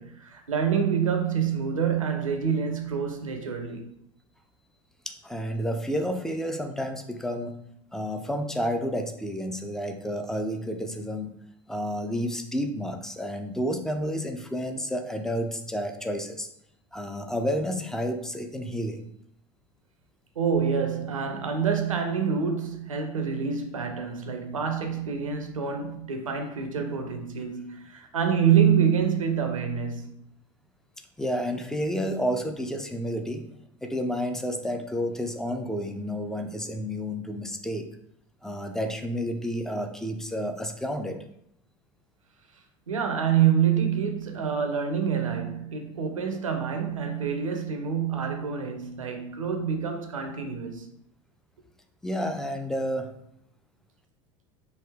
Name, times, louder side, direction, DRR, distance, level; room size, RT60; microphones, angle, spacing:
voice 1, 0.0-3.9 20.4-30.1 42.9-50.9, right 7 dB, 75° right, 0.6 m, -26 dB
voice 2, 5.1-7.5 7.9-11.3 11.7-16.5 16.9-19.0 31.2-33.5 33.8-37.9 38.4-41.2 52.0-53.1, equal, 5° left, 0.4 m, -30 dB
3.4 x 2.6 x 3.4 m
figure-of-eight pair, 75°, 17 cm